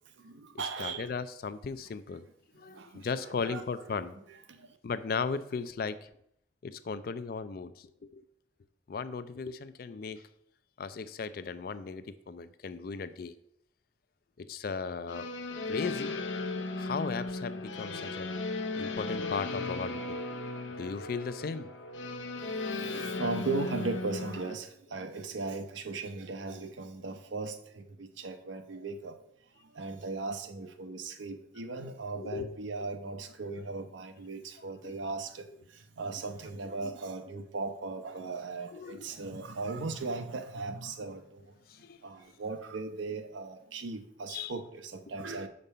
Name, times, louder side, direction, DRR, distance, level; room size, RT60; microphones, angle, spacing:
voice 1, 0.2-1.1 2.5-4.8 22.5-29.2 29.6-41.5 42.0-45.5, right 3 dB, 85° right, 0.7 m, -38 dB
voice 2, 0.8-2.2 2.6-4.1 4.8-6.0 6.6-7.7 8.1-8.2 8.9-10.2 10.8-13.3 14.4-15.2 15.7-16.2 16.8-18.3 18.8-20.2 20.8-21.7 26.5-26.6 32.2-32.5 36.8-36.9 38.7-39.1 41.8-42.0 44.3-44.5, left 5 dB, 50° left, 0.4 m, -36 dB
sound 1, 15.1-24.5, left 3 dB, 90° left, 0.7 m, -36 dB
5.3 x 4.1 x 5.5 m
head